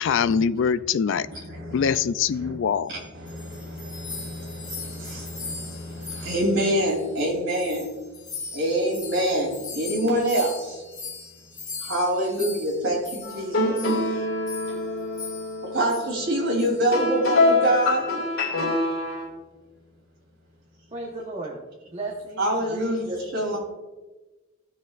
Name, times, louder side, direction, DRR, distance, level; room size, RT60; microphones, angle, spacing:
voice 1, 0.0-1.3 1.7-2.9, left 6 dB, 60° left, 15 dB, 0.3 m, -23 dB
voice 2, 1.3-2.0 2.3-2.5 2.9-7.9 8.5-10.8 11.8-13.8 15.7-18.1 22.4-23.6, right 1 dB, 55° right, -2 dB, 3.1 m, -26 dB
sound 1, 3.0-7.3 7.5-13.4 13.8-14.0 14.5-14.8 15.1-15.6 15.9-16.1 16.6-16.9, left 4 dB, 20° left, 2.3 m, -39 dB
sound 2, 13.2-19.3, left 2 dB, 75° left, 2.2 m, -25 dB
voice 3, 20.9-21.6 21.9-23.1, right 2 dB, 30° right, -3 dB, 1.1 m, -35 dB
15.5 x 6.3 x 2.4 m, 1.2 s
head